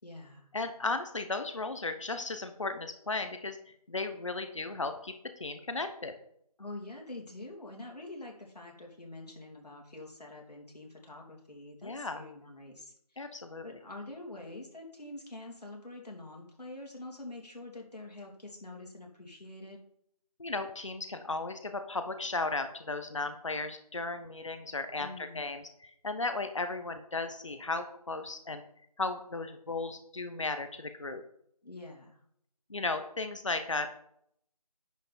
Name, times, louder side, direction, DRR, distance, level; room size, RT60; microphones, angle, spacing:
voice 1, 0.0-0.5 6.6-13.2 13.6-19.8 25.0-25.6 31.6-32.2, left 2 dB, 90° left, 0 dB, 3.1 m, -46 dB
voice 2, 0.5-3.6 3.9-6.1 11.8-12.2 13.2-13.7 20.4-28.6 29.0-31.2 32.7-33.9, left 3 dB, 50° left, 8 dB, 0.9 m, -35 dB
10.5 x 5.7 x 4.3 m, 0.69 s
figure-of-eight pair, 175°, 20 cm